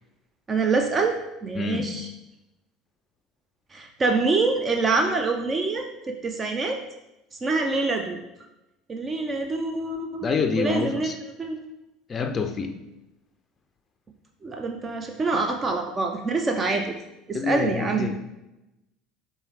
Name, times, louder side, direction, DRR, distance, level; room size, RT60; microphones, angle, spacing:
voice 1, 0.5-1.2 1.4-2.1 3.7-6.8 7.4-8.2 8.9-10.3 10.6-11.1 11.4-11.6 14.4-16.9 17.3-18.1, right 3 dB, 30° right, 4 dB, 0.4 m, -25 dB
voice 2, 1.6-1.9 10.2-11.1 12.1-12.7 17.3-18.2, left 5 dB, 30° left, 7 dB, 0.4 m, -27 dB
4.7 x 2.7 x 3.1 m, 0.94 s
hypercardioid pair, 70°, 0 cm